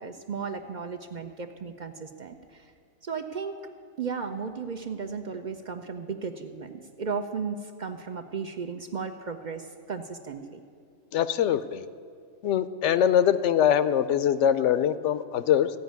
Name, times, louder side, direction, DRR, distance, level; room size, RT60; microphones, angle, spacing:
voice 1, 0.0-2.6 3.0-3.6 4.0-10.6, right 5 dB, 50° right, 6 dB, 0.6 m, -35 dB
voice 2, 11.1-11.8 12.4-15.7, left 9 dB, 80° left, 14 dB, 0.9 m, -23 dB
15.0 x 5.2 x 9.2 m, 2.3 s
omnidirectional pair, 1.2 m